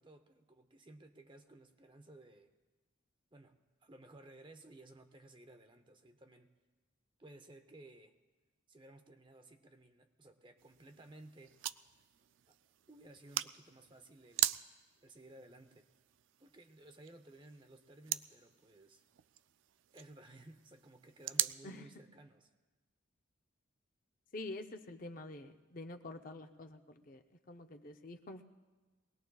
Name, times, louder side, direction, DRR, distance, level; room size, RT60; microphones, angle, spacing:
voice 1, 0.0-2.5 3.3-6.5 7.2-8.1 8.7-11.6 12.5-12.6 12.9-14.6 15.0-15.9 16.4-19.0 19.9-22.5, right 2 dB, 25° right, 7 dB, 0.7 m, -57 dB
sound 1, 10.6-21.6, right 14 dB, 75° right, 0.3 m, -42 dB
voice 2, 24.3-28.4, left 2 dB, 45° left, 6 dB, 0.6 m, -47 dB
23.0 x 19.0 x 2.3 m, 1.2 s
head